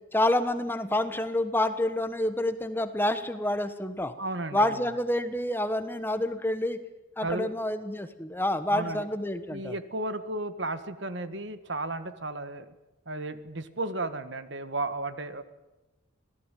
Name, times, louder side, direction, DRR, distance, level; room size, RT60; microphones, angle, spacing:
voice 1, 0.1-4.1 4.5-6.8 7.2-9.7, left 1 dB, 10° left, 10 dB, 1.2 m, -28 dB
voice 2, 4.2-4.8 7.2-7.5 8.7-9.1 9.5-12.7 13.0-15.4, right 2 dB, 60° right, 11 dB, 1.7 m, -34 dB
26.5 x 18.0 x 9.2 m, 1.1 s
head